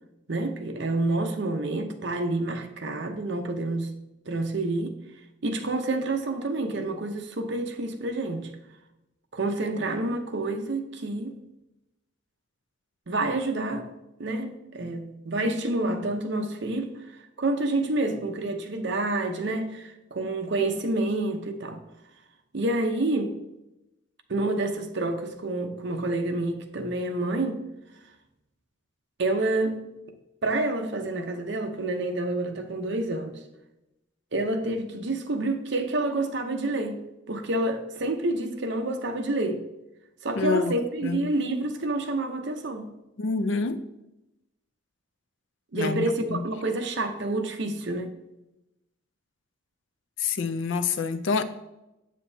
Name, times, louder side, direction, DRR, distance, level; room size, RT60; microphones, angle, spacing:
voice 1, 0.3-4.0 4.3-5.0 5.4-8.5 9.3-11.4 13.1-13.9 14.2-16.9 17.4-21.8 22.5-23.4 24.3-27.7 29.2-29.9 30.4-33.4 34.3-39.6 40.2-42.9 45.7-48.1, right 2 dB, 60° right, 0.7 m, -28 dB
voice 2, 40.4-40.7 41.0-41.3 43.2-43.8 45.7-46.5 50.2-51.4, left 4 dB, 70° left, 0.5 m, -27 dB
7.8 x 7.5 x 2.7 m
head